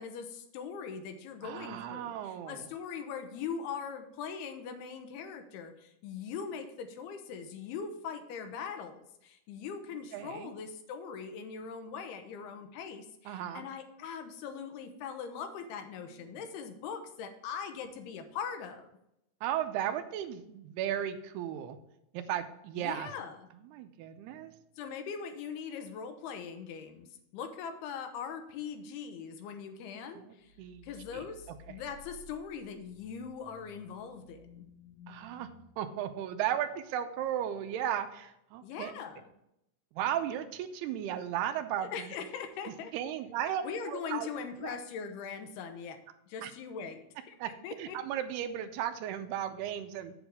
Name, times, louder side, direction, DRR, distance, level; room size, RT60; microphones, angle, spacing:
voice 1, 0.0-18.9 22.7-23.4 24.8-27.1 27.3-30.5 30.8-34.7 38.6-39.3 41.8-42.9 43.6-46.0 46.3-47.4 47.6-48.0, left 6 dB, 80° left, 6 dB, 2.8 m, -41 dB
voice 2, 1.4-2.7 10.1-10.5 13.3-13.6 16.3-16.4 19.4-21.8 22.1-23.1 23.7-24.5 30.1-30.9 31.1-31.3 31.7-31.8 35.1-35.5 35.8-38.9 39.9-42.1 42.7-44.3 44.6-44.8 46.4-46.5 47.4-47.5 47.8-50.1, right 10 dB, 80° right, 9 dB, 2.6 m, -35 dB
sound 1, 30.4-35.7, left 5 dB, 60° left, 2.5 m, -56 dB
8.0 x 7.9 x 3.4 m, 0.82 s
omnidirectional pair, 4.7 m